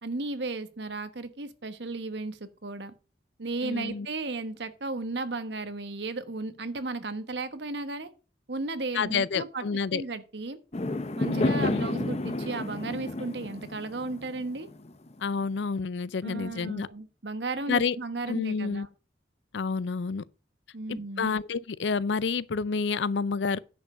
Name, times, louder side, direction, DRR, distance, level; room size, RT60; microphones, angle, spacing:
voice 1, 0.0-2.9 3.4-8.1 8.5-9.6 9.9-10.6 11.2-14.7 16.2-18.9 20.7-21.3, right 3 dB, 65° right, 1.2 m, -34 dB
voice 2, 3.6-4.1 8.9-10.0 11.3-11.9 15.2-16.9 17.7-18.0 18.3-18.9 19.5-20.2 20.9-23.6, left 5 dB, 75° left, 0.5 m, -29 dB
Fireworks, 10.7-15.2, left 2 dB, 35° left, 0.7 m, -31 dB
10.0 x 5.3 x 6.2 m
head